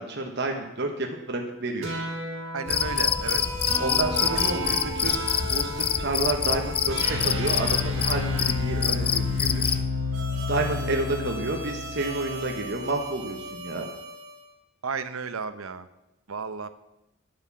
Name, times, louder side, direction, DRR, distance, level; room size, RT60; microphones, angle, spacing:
voice 1, 0.0-1.9 3.8-5.2 5.5-9.8 10.5-13.9, right 2 dB, 55° right, 2 dB, 1.3 m, -30 dB
sound 1, 1.8-14.3, left 2 dB, 70° right, 3.4 m, -31 dB
voice 2, 2.5-3.4 14.8-15.9 16.3-16.7, right 5 dB, 90° right, 11 dB, 0.8 m, -33 dB
Cricket, 2.7-9.9, left 8 dB, 25° left, 0.4 m, -26 dB
9.8 x 7.7 x 7.6 m, 0.93 s
head